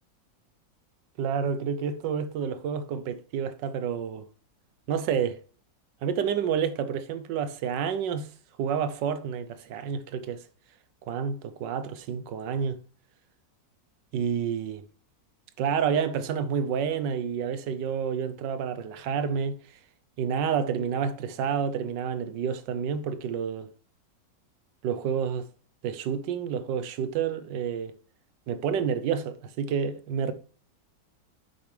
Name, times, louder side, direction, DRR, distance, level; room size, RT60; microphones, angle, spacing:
voice 1, 1.2-4.3 4.9-5.4 6.0-8.3 8.6-10.4 11.1-12.8 14.1-14.8 15.6-19.6 20.2-23.7 24.8-25.5 25.8-28.0 28.5-30.3, right 7 dB, 80° right, 1.4 m, -29 dB
9.3 x 7.1 x 3.3 m
omnidirectional pair, 1.9 m